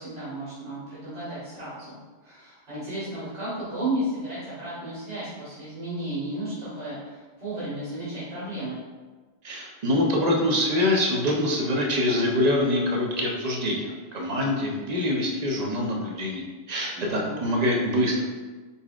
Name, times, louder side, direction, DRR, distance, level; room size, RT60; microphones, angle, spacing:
voice 1, 0.0-8.8 16.9-17.4, right 1 dB, 90° right, -12 dB, 1.9 m, -33 dB
voice 2, 9.4-18.2, left 1 dB, 40° right, 0 dB, 0.7 m, -25 dB
4.7 x 4.1 x 2.4 m, 1.3 s
omnidirectional pair, 1.2 m